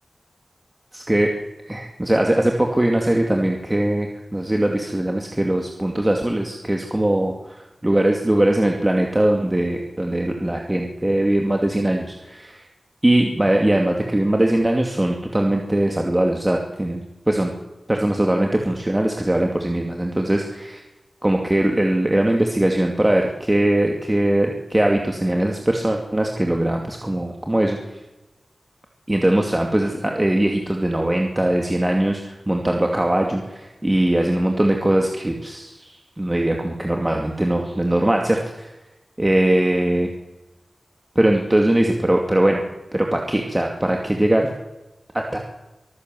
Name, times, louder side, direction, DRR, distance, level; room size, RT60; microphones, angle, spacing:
voice 1, 0.9-1.3 1.7-7.3 7.8-12.6 13.0-17.0 17.3-17.5 17.9-20.8 21.2-27.8 29.1-38.7 39.2-40.1 41.2-42.6 42.9-44.5 45.1-45.4, right 1 dB, 20° right, 1 dB, 2.6 m, -20 dB
24.5 x 14.0 x 7.9 m, 1.0 s
wide cardioid pair, 90°, 0 cm